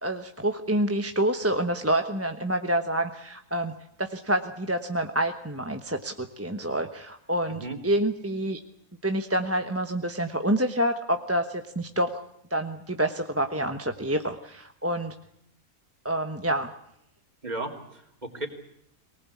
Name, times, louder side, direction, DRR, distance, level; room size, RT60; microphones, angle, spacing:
voice 1, 0.0-3.7 4.0-8.6 9.0-12.2 12.5-15.1 16.0-16.7, right 1 dB, 10° right, 6 dB, 1.0 m, -27 dB
voice 2, 17.4-18.5, right 2 dB, 30° right, 2 dB, 3.6 m, -35 dB
23.5 x 19.5 x 8.5 m, 0.73 s
omnidirectional pair, 1.5 m